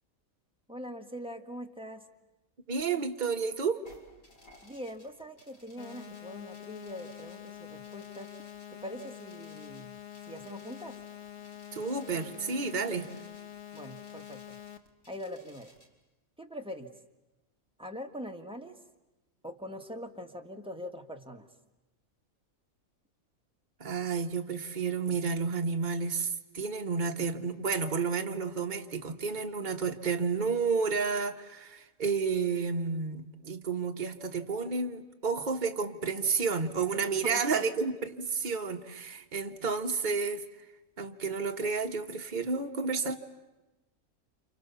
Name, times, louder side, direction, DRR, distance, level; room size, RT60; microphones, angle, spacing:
voice 1, 0.7-2.0 4.6-8.3 8.7-10.0 10.2-11.0 13.7-14.4 15.1-15.7 16.4-16.9 17.8-18.8 19.4-21.5 37.2-37.7, equal, 5° right, 3 dB, 1.7 m, -43 dB
voice 2, 2.7-3.8 11.7-13.1 23.8-40.4 41.0-43.2, right 5 dB, 35° right, 3 dB, 1.5 m, -31 dB
sound 1, 3.9-15.9, equal, 90° left, 4.5 m, -60 dB
sound 2, 5.8-14.8, left 11 dB, 55° left, 1.4 m, -46 dB
30.0 x 28.5 x 7.0 m, 1.0 s
omnidirectional pair, 1.4 m